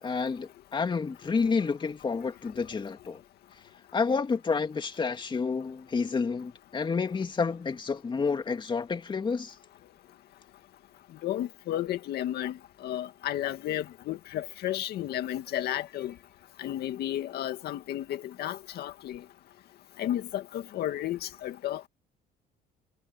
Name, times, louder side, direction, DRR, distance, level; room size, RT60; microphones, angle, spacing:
voice 1, 0.0-3.2 3.9-9.5, left 5 dB, 30° left, 2.4 m, -29 dB
voice 2, 11.2-12.6 12.8-16.1 16.6-19.2 20.0-21.9, left 12 dB, 70° left, 2.1 m, -33 dB
cardioid pair, 110°, 17 cm